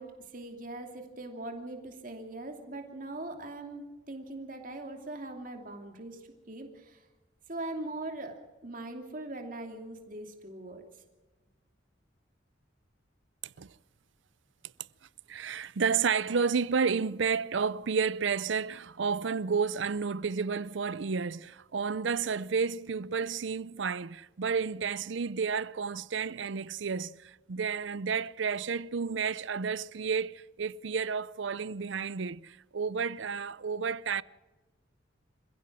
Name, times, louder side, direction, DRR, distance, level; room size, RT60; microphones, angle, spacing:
voice 1, 0.0-7.1 7.5-10.8, right 2 dB, 40° right, 2.8 m, -41 dB
voice 2, 13.4-13.7 15.3-34.2, right 5 dB, 65° right, 0.5 m, -31 dB
27.5 x 16.0 x 6.2 m
head